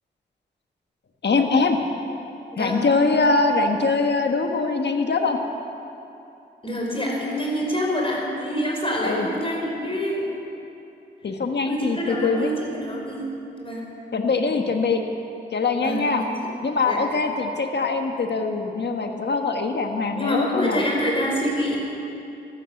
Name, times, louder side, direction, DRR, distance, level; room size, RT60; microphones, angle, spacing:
voice 1, 1.2-1.8 2.6-5.4 9.0-9.3 11.2-12.5 14.1-15.0 15.5-16.2 16.6-20.8, left 4 dB, 65° left, 4 dB, 1.4 m, -22 dB
voice 2, 2.5-2.9 6.6-10.3 11.6-13.3 13.6-13.9 15.8-16.5 16.9-17.0 20.1-21.8, equal, 30° left, -2 dB, 4.8 m, -26 dB
14.5 x 12.5 x 7.1 m, 2.8 s
cardioid pair, 55°, 19 cm